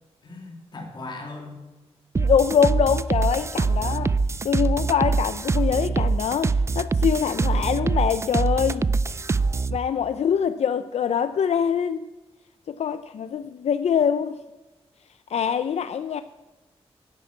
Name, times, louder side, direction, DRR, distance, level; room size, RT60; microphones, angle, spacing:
voice 1, 0.2-1.6, left 2 dB, 45° left, 1 dB, 3.0 m, -38 dB
sound 1, 2.1-9.8, right 4 dB, 25° right, 0.3 m, -24 dB
voice 2, 2.2-4.2 4.4-8.9 9.7-12.1 12.7-14.4 15.3-16.2, left 7 dB, 80° left, 12 dB, 0.4 m, -24 dB
12.0 x 8.8 x 9.4 m, 1.1 s
wide cardioid pair, 170°, 11 cm